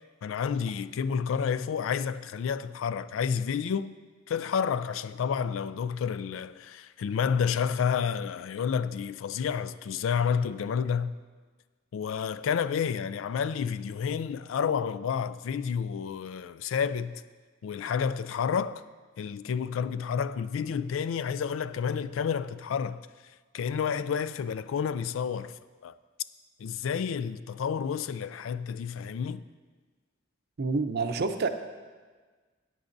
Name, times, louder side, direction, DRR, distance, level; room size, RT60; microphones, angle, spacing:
voice 1, 0.2-3.9 4.3-11.2 11.9-17.2 17.6-18.8 19.2-23.1 23.5-25.9 26.6-29.4, left 7 dB, 85° left, 0.3 m, -30 dB
voice 2, 30.6-31.5, right 4 dB, 55° right, 0.6 m, -28 dB
14.0 x 9.1 x 2.6 m
head